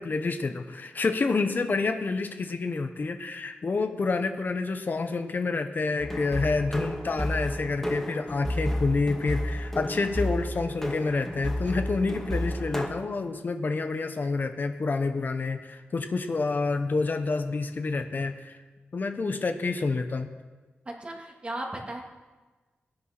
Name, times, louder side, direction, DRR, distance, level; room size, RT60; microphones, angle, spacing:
voice 1, 0.0-18.6 18.9-20.3, left 3 dB, 50° left, 7 dB, 1.1 m, -28 dB
sound 1, 6.0-12.9, equal, 5° left, 2.1 m, -31 dB
voice 2, 20.9-22.0, right 1 dB, 30° right, 0 dB, 2.6 m, -36 dB
19.0 x 9.8 x 6.2 m, 1.3 s
wide cardioid pair, 105°, 4 cm